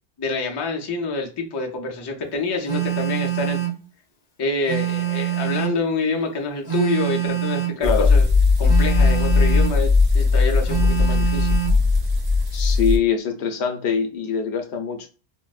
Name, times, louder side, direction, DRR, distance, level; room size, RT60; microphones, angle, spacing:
voice 1, 0.2-3.6 4.4-8.3 8.6-11.6, left 3 dB, 35° left, 1 dB, 0.4 m, -27 dB
Telephone, 2.7-3.8 4.7-5.8 6.7-7.8 8.7-9.8 10.7-11.8, right 13 dB, 50° left, 0.8 m, -25 dB
sound 1, 7.8-13.0, left 4 dB, 35° right, 0.9 m, -18 dB
voice 2, 12.5-15.1, left 6 dB, 80° left, 5 dB, 0.9 m, -23 dB
4.0 x 2.0 x 2.3 m, 0.37 s
omnidirectional pair, 1.1 m